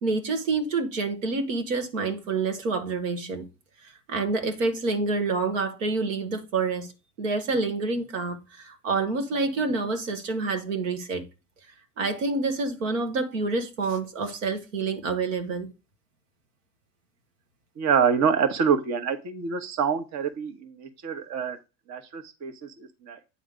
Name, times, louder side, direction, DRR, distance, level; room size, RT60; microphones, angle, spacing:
voice 1, 0.0-3.4 4.1-6.9 7.2-11.2 12.0-15.7, right 3 dB, 90° right, 1.4 m, -27 dB
voice 2, 17.8-21.6 21.9-23.2, right 6 dB, 45° right, 1.2 m, -26 dB
8.6 x 3.2 x 5.1 m
hypercardioid pair, 85°, 38 cm